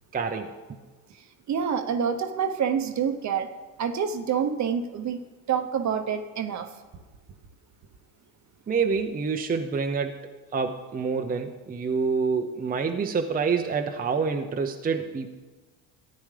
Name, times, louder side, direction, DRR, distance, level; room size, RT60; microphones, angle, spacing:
voice 1, 0.1-0.5 8.7-10.2 10.5-15.3, right 5 dB, 20° right, 4 dB, 0.7 m, -27 dB
voice 2, 1.5-3.5 3.8-6.7, right 7 dB, 45° right, 7 dB, 0.9 m, -27 dB
14.0 x 9.4 x 3.3 m, 1.3 s
supercardioid pair, 80°, 40 cm